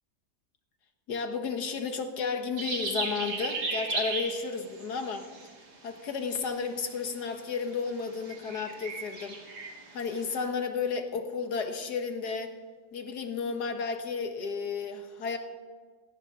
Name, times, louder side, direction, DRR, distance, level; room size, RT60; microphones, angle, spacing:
voice 1, 1.1-5.3 5.8-9.4 9.9-12.5 12.9-15.4, left 5 dB, 70° left, 6 dB, 1.8 m, -33 dB
sound 1, 2.6-5.8 6.1-6.7 6.9-7.3 7.6-10.5, right 3 dB, 70° right, 2.6 m, -36 dB
17.5 x 17.0 x 3.8 m, 1.5 s
omnidirectional pair, 1.8 m